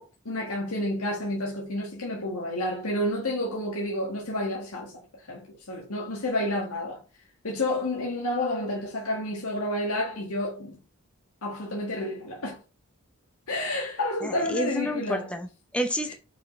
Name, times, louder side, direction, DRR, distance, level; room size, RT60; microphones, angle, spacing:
voice 1, 0.0-4.9 5.3-7.0 7.4-10.8 11.4-12.6 13.5-15.3 16.1-16.2, left 1 dB, 80° left, 1.7 m, -30 dB
voice 2, 14.2-16.1, equal, 5° left, 0.7 m, -30 dB
6.0 x 4.9 x 3.1 m
head